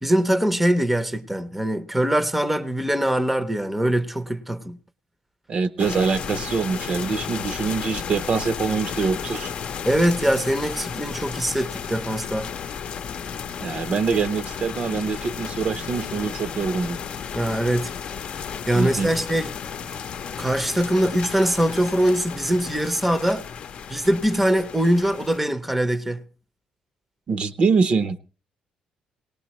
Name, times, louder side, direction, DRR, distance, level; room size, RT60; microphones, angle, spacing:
voice 1, 0.0-4.8 9.8-12.5 17.3-17.9 18.7-19.5 20.4-23.5 23.9-26.2, right 1 dB, 5° right, 0.7 m, -22 dB
voice 2, 5.5-9.5 13.6-17.0 18.7-19.1 27.3-28.2, right 5 dB, 45° right, 0.7 m, -24 dB
sound 1, 5.8-25.4, left 7 dB, 50° left, 0.7 m, -33 dB
19.0 x 18.5 x 3.0 m
cardioid pair, 150°, 2 cm